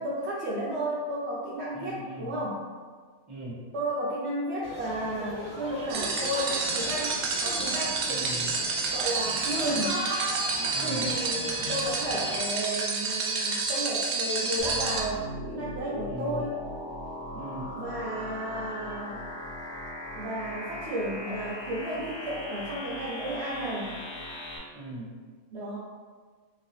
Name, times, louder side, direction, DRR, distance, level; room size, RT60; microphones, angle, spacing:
voice 1, 0.0-2.6 3.7-8.3 8.9-10.0 10.8-16.6 17.8-19.2 20.1-24.0 25.5-25.8, right 1 dB, 65° right, -6 dB, 0.7 m, -33 dB
voice 2, 1.7-2.3 3.3-3.6 8.0-8.5 10.6-11.1 16.0-16.4 17.3-17.8 24.7-25.1, right 1 dB, 5° left, -9 dB, 0.9 m, -39 dB
sound 1, 4.6-12.4, equal, 25° left, 1.1 m, -38 dB
sound 2, 5.9-15.0, right 4 dB, 85° right, 1.1 m, -29 dB
sound 3, 14.6-24.6, left 1 dB, 55° left, 1.0 m, -39 dB
2.9 x 2.9 x 2.9 m, 1.5 s
omnidirectional pair, 1.5 m